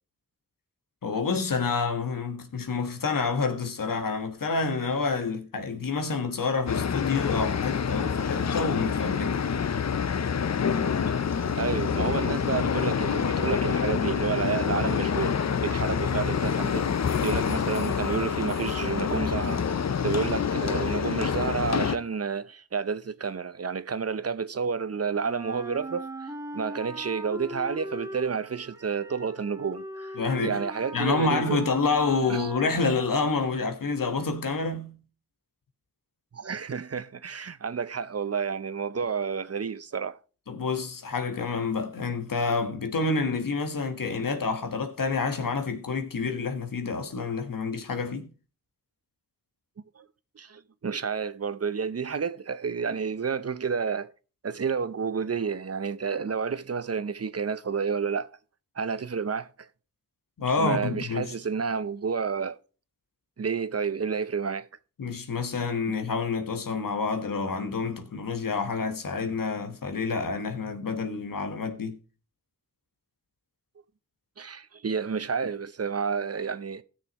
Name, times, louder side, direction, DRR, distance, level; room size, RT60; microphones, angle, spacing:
voice 1, 1.0-9.4 30.2-30.6 30.9-35.0 40.5-48.3 60.4-61.3 65.0-72.0, left 4 dB, 80° left, 1.4 m, -28 dB
sound 1, 6.7-22.0, left 7 dB, 55° left, 0.7 m, -27 dB
voice 2, 11.5-16.9 17.2-19.6 20.0-31.6 32.3-32.5 36.3-40.2 50.0-50.1 50.4-54.1 54.4-58.3 58.8-59.7 60.6-62.6 63.4-64.7 74.4-76.8, right 6 dB, 45° right, 0.7 m, -30 dB
Wind instrument woodwind instrument, 25.2-33.4, right 1 dB, 10° right, 1.4 m, -40 dB
16.5 x 6.5 x 3.0 m
cardioid pair, 45°, 33 cm